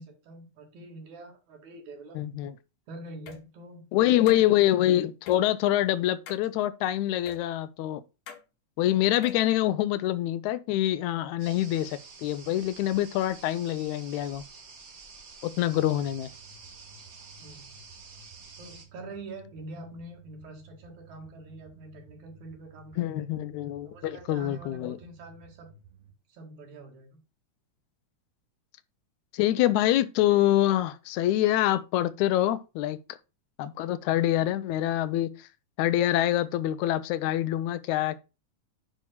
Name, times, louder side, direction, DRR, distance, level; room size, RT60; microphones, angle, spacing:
voice 1, 0.0-2.2 2.9-4.4 17.4-17.7 18.6-23.3 23.8-25.7 26.3-27.2, right 2 dB, 80° right, 3.2 m, -45 dB
voice 2, 2.2-2.5 3.9-8.0 8.8-14.4 15.4-16.3 23.0-25.0 29.3-33.0 33.6-35.5 35.8-38.2, left 13 dB, 85° left, 2.0 m, -25 dB
sound 1, 3.3-3.4 4.3-4.4 5.3-5.4 6.3-6.5 7.3-7.4 8.3-8.4 9.1-9.5, left 6 dB, 65° left, 2.1 m, -43 dB
sound 2, 11.4-18.8, right 4 dB, 45° right, 1.2 m, -49 dB
sound 3, 15.7-26.1, right 3 dB, 20° right, 1.4 m, -55 dB
9.2 x 3.5 x 5.5 m
omnidirectional pair, 3.3 m